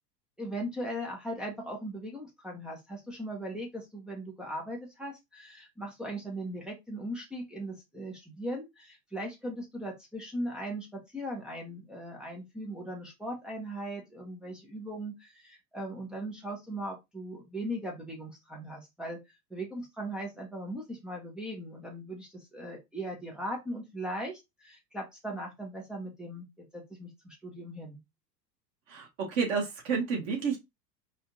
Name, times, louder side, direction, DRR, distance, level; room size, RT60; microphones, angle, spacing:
voice 1, 0.4-19.2 19.5-26.5 26.7-28.0, right 1 dB, ahead, 0.3 m, -39 dB
voice 2, 28.9-30.6, right 5 dB, 50° right, 2.2 m, -30 dB
4.7 x 2.8 x 2.9 m
figure-of-eight pair, 90°, 50 cm